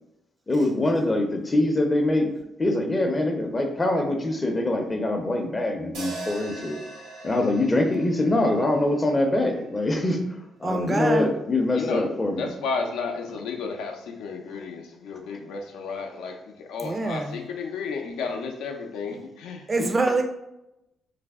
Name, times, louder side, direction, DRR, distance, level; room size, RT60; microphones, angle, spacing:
voice 1, 0.5-2.3 2.6-6.8 7.2-10.2 10.6-12.5, left 1 dB, 25° left, 4 dB, 0.5 m, -24 dB
sound 1, 5.9-10.2, right 2 dB, 90° right, 1.0 m, -41 dB
voice 2, 10.6-11.4 16.8-17.4 19.7-20.2, right 2 dB, 30° right, 5 dB, 0.4 m, -25 dB
voice 3, 11.7-19.9, left 4 dB, 85° left, 3 dB, 0.5 m, -33 dB
3.2 x 2.0 x 3.4 m, 0.88 s
cardioid pair, 90°, 0 cm